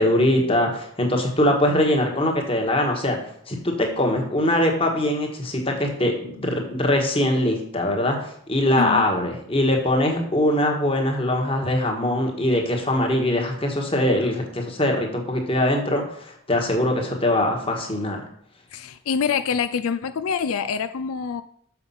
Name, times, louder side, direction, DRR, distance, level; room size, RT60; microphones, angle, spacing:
voice 1, 0.0-3.2 3.5-18.2, left 1 dB, 25° left, 2 dB, 1.5 m, -22 dB
voice 2, 18.7-21.4, left 6 dB, 80° left, 11 dB, 0.4 m, -25 dB
6.8 x 5.9 x 5.6 m, 0.65 s
head